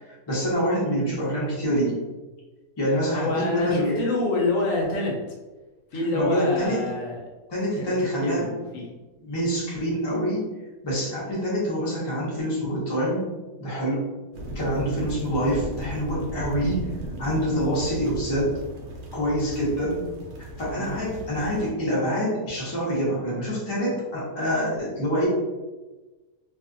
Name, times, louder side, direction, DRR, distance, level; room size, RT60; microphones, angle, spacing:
voice 1, 0.0-2.0 2.8-4.0 6.1-6.8 7.5-8.5 8.7-8.8 9.2-10.5 10.8-13.3 13.6-14.1 14.5-16.9 17.2-18.5 19.1-20.1 20.4-25.3, equal, 25° left, -6 dB, 0.6 m, -26 dB
voice 2, 3.1-5.2 5.9-7.2 7.8-8.9 20.7-21.0, left 2 dB, 70° left, -2 dB, 0.9 m, -27 dB
sound 1, 14.3-21.7, equal, 85° right, 1.1 m, -36 dB
2.7 x 2.3 x 2.5 m, 1.2 s
omnidirectional pair, 1.6 m